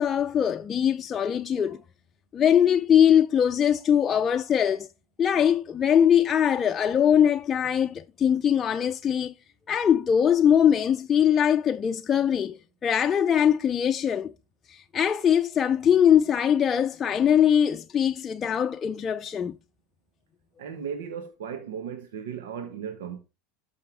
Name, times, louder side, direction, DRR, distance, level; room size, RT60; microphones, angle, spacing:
voice 1, 0.0-1.8 2.3-4.9 5.2-9.3 9.7-14.3 14.7-19.6, left 9 dB, 35° left, 0.5 m, -22 dB
voice 2, 20.6-23.2, right 7 dB, 80° right, 1.2 m, -36 dB
12.5 x 5.6 x 3.5 m
hypercardioid pair, 95°, 0 cm